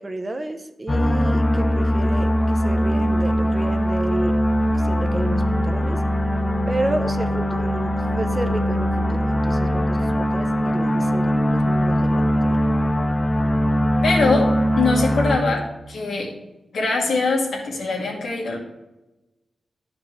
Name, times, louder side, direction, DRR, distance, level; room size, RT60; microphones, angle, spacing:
voice 1, 0.0-4.4 4.6-6.0 6.7-12.6, right 2 dB, 25° right, 7 dB, 0.7 m, -31 dB
sound 1, 0.9-15.4, equal, 25° left, 0.7 m, -21 dB
voice 2, 14.0-16.3 16.7-18.6, left 3 dB, 90° left, -2 dB, 2.1 m, -22 dB
11.5 x 5.1 x 3.2 m, 1.0 s
wide cardioid pair, 90°, 0 cm